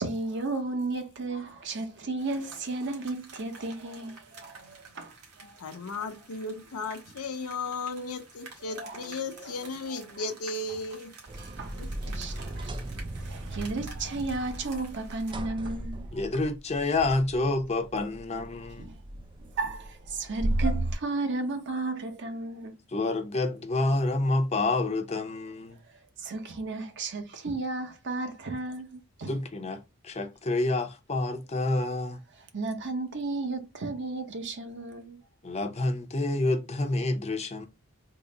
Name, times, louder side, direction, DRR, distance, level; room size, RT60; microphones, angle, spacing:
voice 1, 0.0-5.6 8.7-10.2 11.4-16.1 18.8-22.7 25.9-29.4 32.4-35.2, right 3 dB, 50° right, 0.7 m, -34 dB
sound 1, 2.2-15.3, right 4 dB, 85° right, 1.4 m, -51 dB
voice 2, 5.4-11.1 11.8-11.9, left 3 dB, 75° left, 0.7 m, -35 dB
sound 2, 11.3-20.9, right 1 dB, 20° right, 0.3 m, -35 dB
voice 3, 16.1-18.8 22.9-25.8 29.3-32.2 35.4-37.7, left 2 dB, 30° left, 0.5 m, -28 dB
3.8 x 2.0 x 3.7 m
head